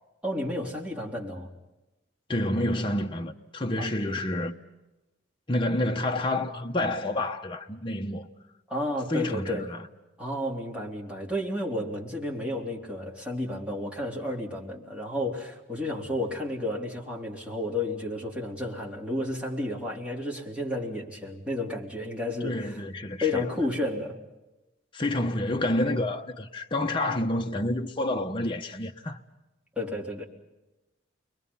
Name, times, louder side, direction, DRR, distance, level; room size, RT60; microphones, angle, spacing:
voice 1, 0.2-1.5 3.8-3.9 8.7-9.7 10.2-22.8 23.2-24.2 29.8-30.2, left 1 dB, 5° right, 3.8 m, -32 dB
voice 2, 2.3-4.6 5.5-8.3 9.1-9.9 22.4-23.5 24.9-29.2, left 1 dB, 25° left, 1.0 m, -29 dB
29.5 x 23.0 x 5.6 m
head